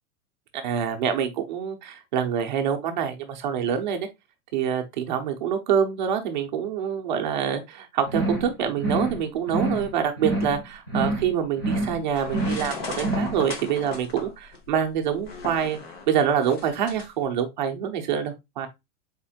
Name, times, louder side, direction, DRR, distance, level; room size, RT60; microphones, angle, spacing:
voice 1, 0.5-4.1 4.5-15.8 16.1-18.7, right 8 dB, 30° right, 0.6 m, -26 dB
sound 1, 8.1-8.5 8.8-9.2 9.5-9.9 10.2-10.6 10.9-11.3 11.6-12.0 12.3-12.7 13.0-13.4, right 2 dB, 15° left, 0.4 m, -27 dB
sound 2, 12.1-17.1, left 4 dB, 40° left, 1.1 m, -37 dB
4.3 x 4.2 x 2.3 m
supercardioid pair, 175°, 46 cm